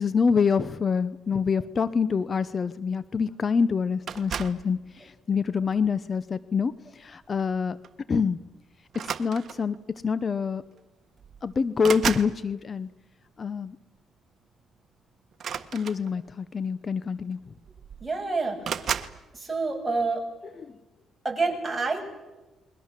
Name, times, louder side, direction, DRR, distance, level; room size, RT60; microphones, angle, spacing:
voice 1, 0.0-7.8 8.1-8.4 8.9-10.6 11.4-12.9 13.4-13.8 15.7-17.4 20.6-20.7, left 5 dB, 40° left, 16 dB, 0.8 m, -26 dB
sound 1, 4.1-4.7 5.6-5.9 7.4-7.5 7.8-8.0 8.9-9.8 10.8-10.9 11.2-12.4 15.3-16.4 17.3-17.4 17.6-18.2 18.6-19.2, right 8 dB, 55° right, 1.4 m, -33 dB
voice 2, 18.0-18.6 19.3-20.3 21.2-22.0, right 3 dB, 15° right, 1 dB, 7.1 m, -27 dB
29.5 x 22.5 x 7.6 m, 1.1 s
cardioid pair, 90°, 0 cm